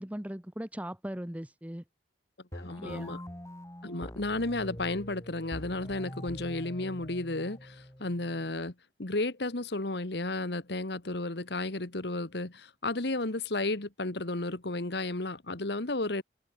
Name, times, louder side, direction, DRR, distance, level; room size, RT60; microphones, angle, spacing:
voice 1, 0.0-1.8 2.8-3.1, equal, 10° right, 0.9 m, -39 dB
voice 2, 2.5-3.2 3.8-8.7 9.0-16.2, left 2 dB, 60° left, 1.6 m, -33 dB
sound 1, 2.5-8.5, equal, 15° left, 3.6 m, -44 dB
head